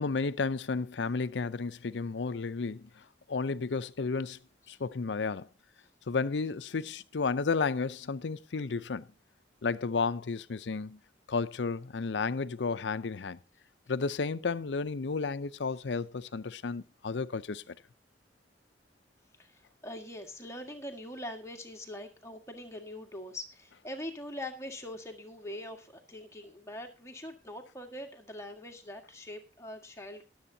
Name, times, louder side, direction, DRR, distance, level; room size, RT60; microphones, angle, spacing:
voice 1, 0.0-3.0 3.3-4.4 4.7-5.5 6.1-9.1 9.6-11.0 11.3-13.4 13.9-17.7, left 4 dB, 80° left, 0.6 m, -32 dB
voice 2, 19.4-30.2, left 1 dB, 15° left, 1.7 m, -43 dB
21.0 x 8.0 x 2.8 m
head